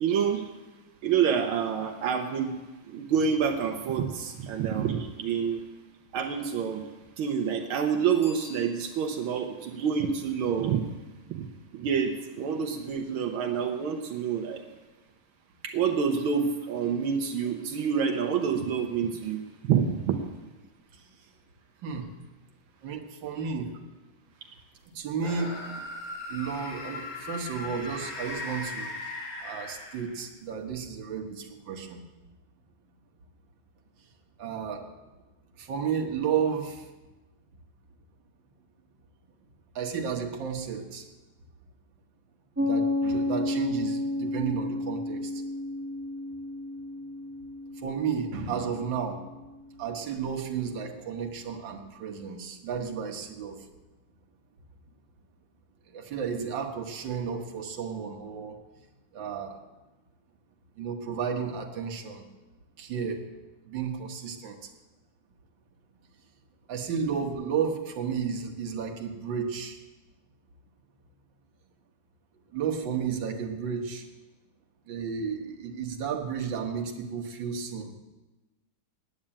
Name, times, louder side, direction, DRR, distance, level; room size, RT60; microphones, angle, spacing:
voice 1, 0.0-0.4 1.0-2.6 2.9-5.6 6.1-6.8 7.2-10.8 11.3-11.5 11.7-14.6 15.6-20.2, right 7 dB, 85° right, 4 dB, 1.7 m, -27 dB
Bicycle bell, 8.2-9.4 14.8-14.9, left 1 dB, 20° left, 4.7 m, -50 dB
voice 2, 22.8-23.7 24.9-25.9 26.3-28.9 29.4-32.0 34.4-34.9 35.6-36.9 39.8-41.0 42.6-45.4 47.8-49.2 49.8-53.6 55.9-58.6 59.1-59.6 60.8-62.2 62.8-63.3 63.7-64.6 66.7-69.8 72.5-74.1 74.9-77.9, right 6 dB, 65° right, 2 dB, 1.9 m, -32 dB
sound 1, 25.2-30.4, left 2 dB, 80° left, 2.7 m, -38 dB
Piano, 42.6-49.8, left 2 dB, 10° right, 0.8 m, -32 dB
9.5 x 8.8 x 8.7 m, 1.1 s
omnidirectional pair, 2.2 m